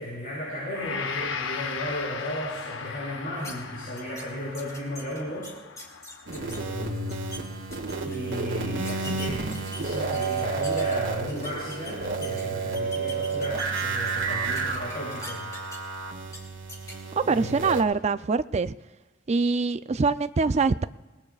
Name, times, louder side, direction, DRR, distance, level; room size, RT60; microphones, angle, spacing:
voice 1, 0.0-5.5 6.3-7.4 8.0-15.4 17.3-17.7, equal, 45° left, -8 dB, 6.9 m, -35 dB
Gong, 0.7-9.1 9.5-9.7, left 5 dB, 70° left, 0.8 m, -38 dB
sound 1, 3.4-3.5 4.0-4.2 4.5-6.6 7.0-7.4 7.7-8.2 8.8-10.9 11.3-12.4 12.7-14.2 14.6-16.0 16.3-16.4 16.7-16.9, left 1 dB, 15° left, 2.7 m, -41 dB
sound 2, 6.3-17.8, right 4 dB, 70° right, 1.9 m, -31 dB
voice 2, 17.2-18.7 19.3-20.8, right 4 dB, 35° right, 12 dB, 0.4 m, -24 dB
28.5 x 19.0 x 2.4 m, 1.2 s
head